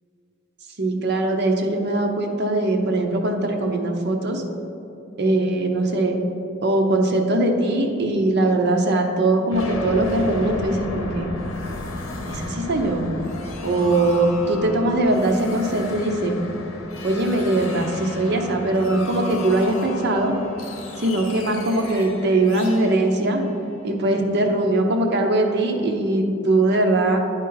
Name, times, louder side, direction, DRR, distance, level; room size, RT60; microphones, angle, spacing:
voice 1, 0.8-4.4 5.2-6.1 6.6-11.3 12.3-13.2 13.6-16.4 17.0-20.3 21.0-23.4 23.8-27.2, right 2 dB, 55° right, 3 dB, 0.8 m, -21 dB
sound 1, 9.5-24.2, left 2 dB, 90° left, 0.8 m, -34 dB
10.5 x 4.0 x 4.0 m, 2.8 s
head